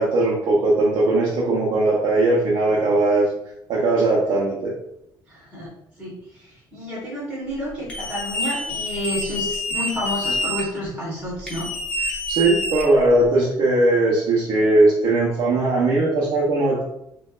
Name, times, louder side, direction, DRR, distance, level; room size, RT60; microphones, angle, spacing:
voice 1, 0.0-3.3 3.7-4.8 12.0-16.8, right 2 dB, 65° right, -4 dB, 0.9 m, -19 dB
voice 2, 5.3-5.7 6.0-11.7, left 1 dB, 15° right, -8 dB, 1.4 m, -30 dB
sound 1, 7.9-10.6 11.5-13.3, left 1 dB, 15° left, 0.8 m, -27 dB
4.3 x 2.6 x 2.4 m, 0.79 s
cardioid pair, 140°, 8 cm